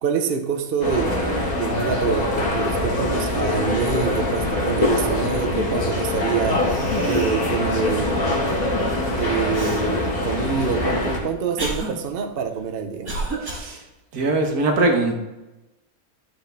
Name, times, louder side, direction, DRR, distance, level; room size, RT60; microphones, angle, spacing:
voice 1, 0.0-6.7 7.1-8.4 9.1-13.1, right 7 dB, 45° right, 4 dB, 0.9 m, -26 dB
sound 1, 0.8-11.2, left 1 dB, 70° left, 2.2 m, -23 dB
Cough, 6.1-6.2 6.6-7.5 7.9-8.0 9.5-9.8 10.6-13.7, right 2 dB, 70° right, 2.2 m, -31 dB
voice 2, 13.4-13.8 14.1-15.1, right 2 dB, 90° right, 2 dB, 1.9 m, -21 dB
12.0 x 5.7 x 3.4 m, 0.98 s
omnidirectional pair, 1.5 m